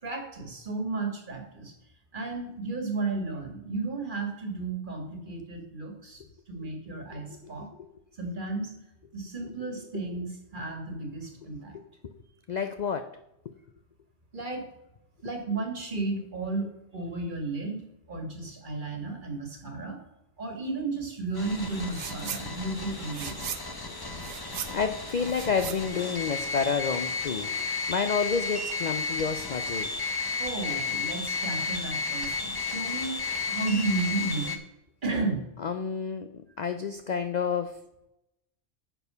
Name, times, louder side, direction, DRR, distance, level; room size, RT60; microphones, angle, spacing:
voice 1, 0.0-1.7 2.1-7.7 8.2-8.7 9.1-11.8 14.3-14.7 15.2-17.8 18.1-20.0 20.4-23.5 30.4-33.2 33.5-34.6 35.0-35.5, right 3 dB, 40° right, 4 dB, 1.8 m, -33 dB
voice 2, 12.5-13.1 24.4-30.1 35.6-36.3 36.6-37.8, left 6 dB, 55° left, 8 dB, 0.5 m, -30 dB
sound 1, 21.3-34.6, left 4 dB, 20° left, 0.8 m, -33 dB
sound 2, 21.9-22.5 22.8-26.7, right 8 dB, 65° right, 1.0 m, -39 dB
9.9 x 4.7 x 6.7 m, 0.89 s
omnidirectional pair, 1.3 m